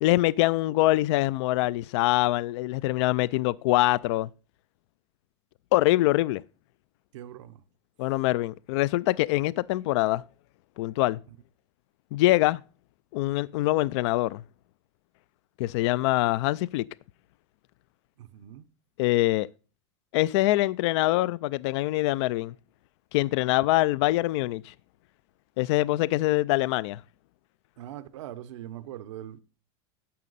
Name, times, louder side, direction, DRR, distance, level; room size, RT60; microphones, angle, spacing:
voice 1, 0.0-4.3 5.7-6.4 8.0-10.2 10.8-11.2 12.1-12.6 13.1-14.4 15.6-16.9 19.0-19.5 20.1-22.5 23.1-24.7 25.6-27.0, left 18 dB, 70° left, 0.4 m, -24 dB
voice 2, 7.1-7.6 18.2-18.7 27.8-29.4, right 12 dB, 80° right, 0.8 m, -41 dB
11.0 x 7.4 x 4.0 m
supercardioid pair, 115°, 15 cm